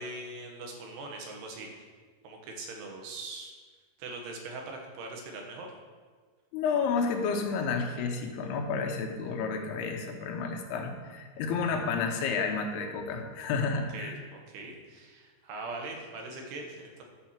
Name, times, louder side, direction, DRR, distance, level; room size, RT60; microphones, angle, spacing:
voice 1, 0.0-1.8 2.2-3.5 4.0-5.7 13.7-17.0, right 2 dB, 85° right, 1 dB, 3.4 m, -41 dB
voice 2, 6.5-14.2, left 5 dB, 85° left, 3 dB, 3.0 m, -31 dB
11.5 x 4.4 x 7.3 m, 1.5 s
omnidirectional pair, 4.5 m